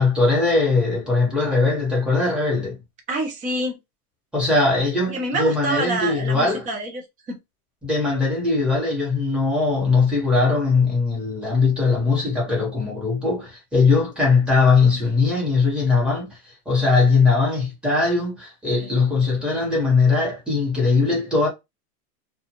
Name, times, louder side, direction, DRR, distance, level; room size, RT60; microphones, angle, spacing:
voice 1, 0.0-2.8 4.3-6.6 7.8-16.3 16.7-21.5, left 4 dB, ahead, 1.0 m, -20 dB
voice 2, 3.1-3.8 5.1-7.0 7.3-7.4 18.8-19.0, right 2 dB, 20° right, 0.6 m, -27 dB
2.5 x 2.3 x 2.9 m
supercardioid pair, 145°, 45 cm